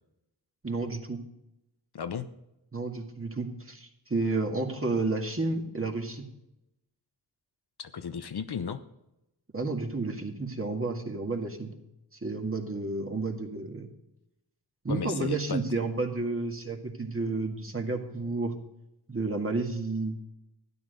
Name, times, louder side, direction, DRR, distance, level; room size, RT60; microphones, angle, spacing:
voice 1, 0.6-1.2 2.7-6.3 9.5-11.7 12.2-13.9 14.8-18.5 19.1-20.2, right 3 dB, 30° right, 2 dB, 2.1 m, -31 dB
voice 2, 1.9-2.3 7.8-8.8 14.9-15.6, left 7 dB, 60° left, 10 dB, 0.8 m, -34 dB
12.5 x 9.8 x 5.3 m, 0.88 s
cardioid pair, 50°, 44 cm